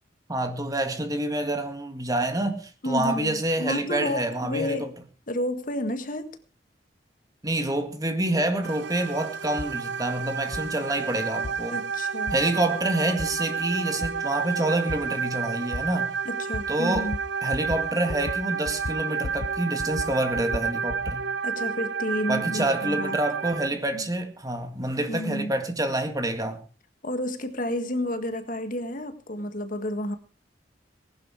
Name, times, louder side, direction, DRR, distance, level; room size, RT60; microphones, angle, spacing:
voice 1, 0.3-4.8 7.4-11.8 12.3-16.2 16.7-17.1 17.4-21.3 22.3-26.6, right 1 dB, 20° right, 2.0 m, -27 dB
voice 2, 2.8-4.9 5.3-6.4 11.7-12.4 16.2-17.2 21.4-23.2 23.9-24.1 25.0-25.5 27.0-30.2, left 1 dB, 50° left, 1.7 m, -30 dB
sound 1, 8.6-23.7, right 6 dB, 80° right, 0.7 m, -31 dB
sound 2, 9.6-9.7 10.5-10.6 11.4-11.6 12.3-12.4 13.2-13.3 14.0-14.1 14.9-15.0 15.7-15.8 16.5-16.7 16.9-17.3 17.5-17.8 18.1-18.4 18.7-19.5 19.8-21.2, left 2 dB, 85° left, 0.8 m, -34 dB
19.0 x 11.5 x 4.8 m
head